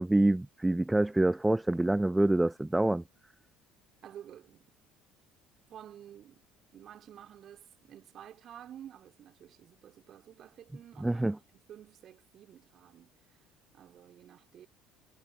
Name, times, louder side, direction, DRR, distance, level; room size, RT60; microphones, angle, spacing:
voice 1, 0.0-3.0 11.0-11.4, right 1 dB, 10° right, 0.8 m, -26 dB
voice 2, 4.0-4.7 5.7-6.4 6.7-11.2 11.5-13.4 13.7-14.7, right 10 dB, 45° right, 3.5 m, -51 dB
figure-of-eight pair, 55°, 0 cm